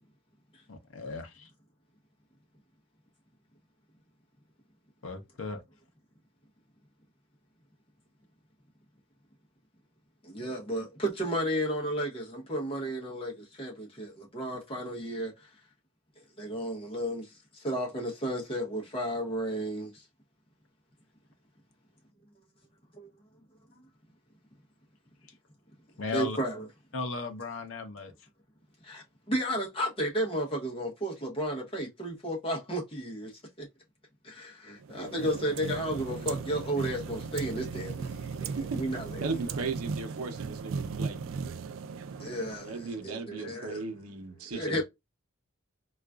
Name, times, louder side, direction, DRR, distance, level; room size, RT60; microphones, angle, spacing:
voice 1, 0.7-1.5 5.0-5.6 26.0-26.4 26.9-28.1, left 4 dB, 65° left, 0.6 m, -36 dB
voice 2, 10.2-15.5 16.4-20.1 26.1-26.6 28.8-33.3 33.6-33.7 34.2-39.2 42.2-43.8 44.5-44.8, equal, 25° left, 0.8 m, -33 dB
sound 1, 34.8-43.1, right 5 dB, 60° right, 0.3 m, -37 dB
voice 3, 38.6-41.2 42.6-44.8, right 4 dB, 80° right, 0.7 m, -37 dB
3.8 x 2.4 x 2.3 m
head